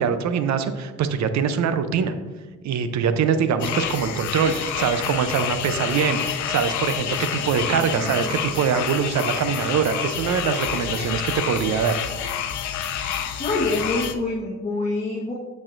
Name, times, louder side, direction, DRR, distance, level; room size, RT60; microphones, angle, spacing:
voice 1, 0.0-2.1 2.6-12.0, right 7 dB, 65° right, 10 dB, 0.7 m, -23 dB
sound 1, 3.6-14.1, left 9 dB, 75° left, 0.6 m, -28 dB
voice 2, 7.7-8.3 13.4-15.3, left 2 dB, 20° left, -3 dB, 1.3 m, -27 dB
8.7 x 6.3 x 2.6 m, 1.3 s
cardioid pair, 90°, 30 cm